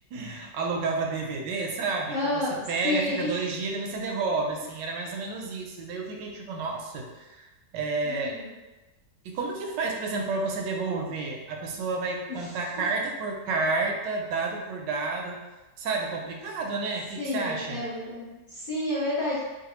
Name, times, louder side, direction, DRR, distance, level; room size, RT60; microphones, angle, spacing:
voice 1, 0.1-7.5 7.7-8.4 9.2-15.4 15.8-17.9, right 3 dB, 85° right, 1 dB, 1.2 m, -30 dB
voice 2, 2.1-3.4 8.0-8.5 12.3-12.4 17.2-19.4, left 1 dB, 50° left, -10 dB, 0.6 m, -30 dB
3.2 x 2.2 x 2.9 m, 1.1 s
omnidirectional pair, 1.9 m